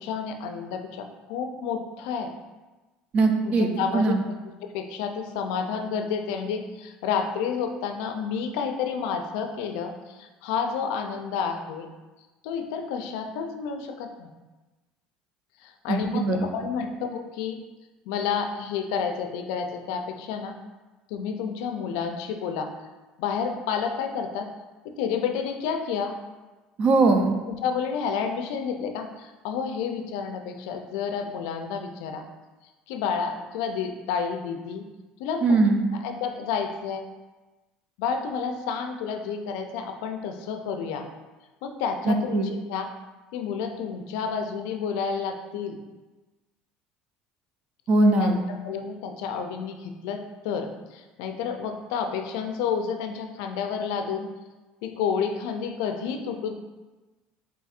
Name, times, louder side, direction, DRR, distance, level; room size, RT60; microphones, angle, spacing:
voice 1, 0.0-2.3 3.4-4.4 4.7-11.9 12.4-14.3 15.6-17.6 18.1-20.6 21.1-22.7 23.2-24.5 24.8-26.1 27.5-32.2 32.9-34.8 35.2-35.6 36.0-37.0 38.0-41.1 41.6-42.9 43.3-45.8 48.2-54.3 54.8-56.5, left 6 dB, 80° left, 6 dB, 0.4 m, -30 dB
voice 2, 3.1-4.2 15.9-16.5 26.8-27.4 35.4-35.8 42.1-42.5 47.9-48.4, right 3 dB, 45° right, 4 dB, 0.5 m, -21 dB
4.2 x 3.8 x 2.4 m, 1.2 s
supercardioid pair, 95°, 3 cm